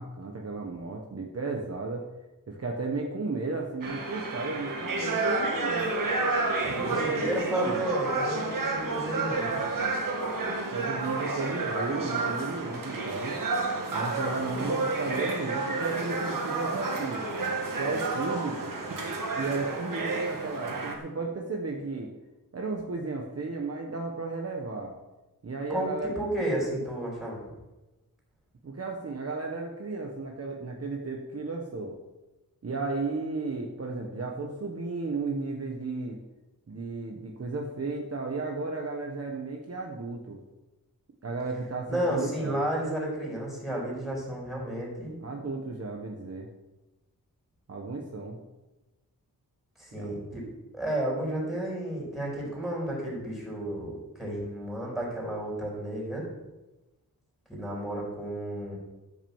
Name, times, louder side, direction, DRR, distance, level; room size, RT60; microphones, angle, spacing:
voice 1, 0.0-2.0 2.5-6.2 6.7-7.8 10.7-13.4 13.9-17.2 17.8-18.7 19.4-22.1 22.5-24.9 25.4-26.1 28.6-32.0 32.6-36.2 36.7-40.4 41.2-42.6 45.2-46.5 47.7-48.4 50.0-50.1, right 3 dB, 40° right, 1 dB, 1.2 m, -34 dB
sound 1, 3.8-21.0, right 3 dB, 60° right, 2.0 m, -30 dB
voice 2, 6.6-9.6 25.7-27.4 41.9-45.2 49.8-50.4 50.7-56.2 57.5-58.8, right 1 dB, ahead, -3 dB, 5.1 m, -32 dB
13.0 x 6.3 x 7.2 m, 1.1 s
wide cardioid pair, 165°, 36 cm